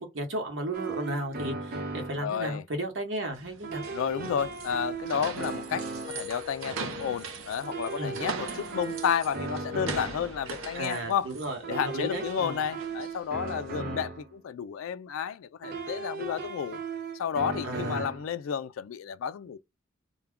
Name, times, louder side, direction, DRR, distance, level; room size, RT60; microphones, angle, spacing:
voice 1, 0.0-3.8 8.0-8.2 10.7-12.6 13.7-14.0 17.6-18.1, right 1 dB, 65° right, 1.0 m, -34 dB
sound 1, 0.7-2.3 3.6-6.3 7.6-10.3 11.6-14.3 15.6-18.3, right 4 dB, 45° right, 0.6 m, -37 dB
voice 2, 2.2-2.6 3.9-5.9 6.1-11.3 11.7-16.8 17.1-19.6, left 7 dB, 80° left, 0.3 m, -31 dB
sound 2, 3.3-13.7, right 5 dB, 90° right, 0.7 m, -41 dB
sound 3, 6.0-11.0, left 8 dB, 30° left, 0.7 m, -45 dB
2.3 x 2.2 x 3.5 m
head